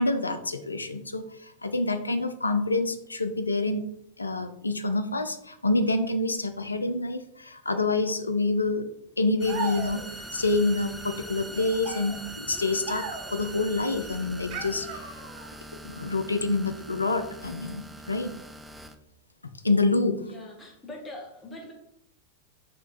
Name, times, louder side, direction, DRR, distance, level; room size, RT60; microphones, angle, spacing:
voice 1, 0.0-3.8 4.2-8.9 9.2-10.0 10.3-15.0 15.8-18.3 19.6-20.2, left 2 dB, 80° left, 9 dB, 0.4 m, -27 dB
sound 1, 9.4-18.9, right 1 dB, ahead, 0.3 m, -42 dB
sound 2, 9.4-10.3 11.5-13.5 14.5-15.6, right 3 dB, 45° right, 0.7 m, -37 dB
voice 2, 20.2-21.7, left 1 dB, 15° left, 0 dB, 1.2 m, -42 dB
4.2 x 3.0 x 4.0 m, 0.77 s
figure-of-eight pair, 90°, 0 cm